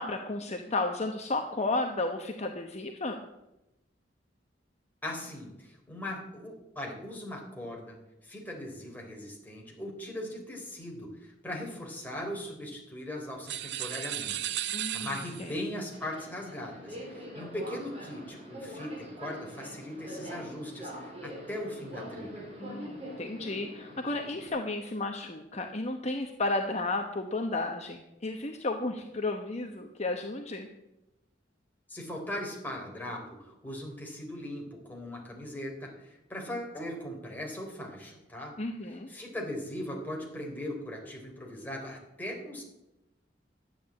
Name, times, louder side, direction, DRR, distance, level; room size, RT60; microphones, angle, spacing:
voice 1, 0.0-3.2 14.7-15.5 22.6-30.7 38.6-39.1, left 2 dB, 35° left, 4 dB, 1.0 m, -33 dB
voice 2, 5.0-8.0 8.2-22.4 31.9-38.5 39.1-42.6, left 1 dB, 10° left, -1 dB, 3.6 m, -39 dB
sound 1, 13.5-15.6, right 12 dB, 65° right, 0.7 m, -35 dB
Subway metro underground, 14.9-24.5, equal, 35° right, 4.0 m, -44 dB
12.5 x 8.9 x 8.5 m, 0.92 s
head